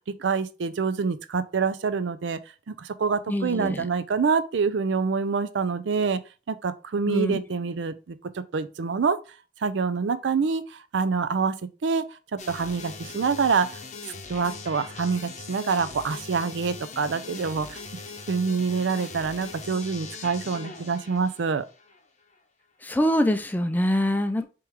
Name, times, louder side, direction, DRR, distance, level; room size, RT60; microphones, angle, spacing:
voice 1, 0.2-2.4 2.7-6.2 6.5-9.2 9.6-11.5 11.8-12.0 12.3-13.8 14.3-17.8 18.3-21.7, right 5 dB, 85° right, 0.5 m, -26 dB
voice 2, 3.3-3.9 7.1-7.4 22.8-24.5, equal, 10° left, 0.4 m, -24 dB
sound 1, 12.4-22.0, left 4 dB, 40° left, 0.7 m, -41 dB
3.6 x 3.0 x 4.6 m
head